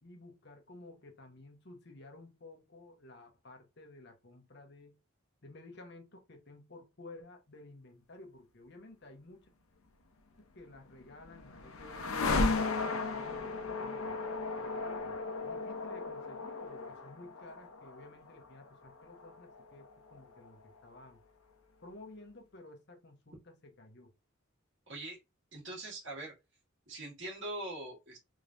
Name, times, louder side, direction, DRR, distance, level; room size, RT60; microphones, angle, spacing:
voice 1, 0.0-5.0 5.4-9.5 10.4-14.2 14.6-21.2 21.8-24.1, left 2 dB, 55° left, 1.1 m, -54 dB
sound 1, 10.7-20.8, left 3 dB, 85° left, 0.7 m, -36 dB
voice 2, 24.9-25.2 25.5-26.3 26.9-28.2, right 1 dB, 60° right, 2.1 m, -42 dB
3.7 x 3.2 x 2.6 m
head